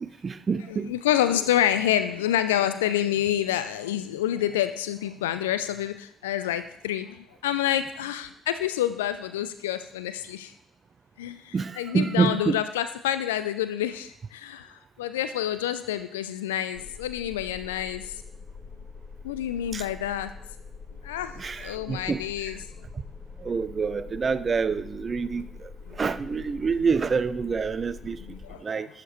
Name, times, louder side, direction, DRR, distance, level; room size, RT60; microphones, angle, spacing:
voice 1, 0.0-1.0 11.5-12.6 19.7-19.9 21.4-22.6 23.4-28.2 28.6-28.9, right 5 dB, 40° right, 15 dB, 0.4 m, -27 dB
voice 2, 0.7-7.1 7.4-10.5 11.2-14.7 15.0-18.0 19.2-20.3 21.0-21.3 21.6-22.6 25.4-25.5 25.9-26.0 28.2-28.9, left 11 dB, 80° left, 12 dB, 0.3 m, -28 dB
sound 1, 16.7-28.5, left 5 dB, 40° left, 2.5 m, -44 dB
11.0 x 4.9 x 3.1 m, 0.73 s
figure-of-eight pair, 45°, 0 cm